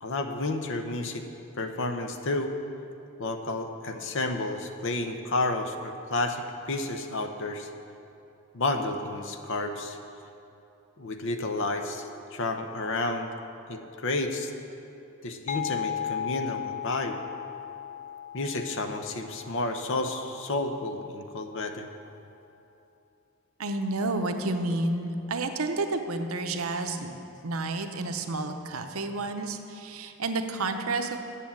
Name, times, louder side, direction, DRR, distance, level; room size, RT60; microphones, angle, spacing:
voice 1, 0.0-1.2 1.6-2.5 3.2-7.7 8.5-10.0 11.0-13.3 13.7-14.5 15.2-17.2 18.3-21.9, left 2 dB, 65° left, 6 dB, 0.8 m, -31 dB
sound 1, 15.5-20.9, left 10 dB, 35° left, 0.3 m, -36 dB
voice 2, 23.6-27.1 27.4-31.2, right 2 dB, 80° right, 6 dB, 0.8 m, -30 dB
8.4 x 7.1 x 8.5 m, 2.8 s
head